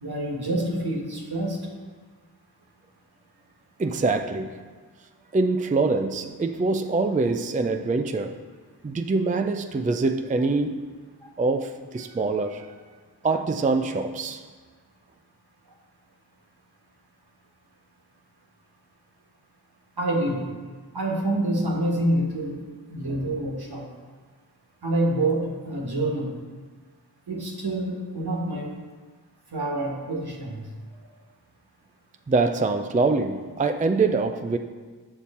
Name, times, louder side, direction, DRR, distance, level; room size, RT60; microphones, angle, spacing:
voice 1, 0.0-1.6 11.2-11.3 20.0-20.5 20.9-22.6 22.9-23.9 24.8-26.3 27.3-28.7 29.5-30.6, right 1 dB, 70° right, 1.4 m, -27 dB
voice 2, 3.8-4.6 5.3-8.4 8.8-10.8 11.4-12.7 13.2-14.4 32.3-34.6, right 3 dB, 20° right, 0.3 m, -24 dB
7.0 x 5.9 x 4.2 m
wide cardioid pair, 45°, 40 cm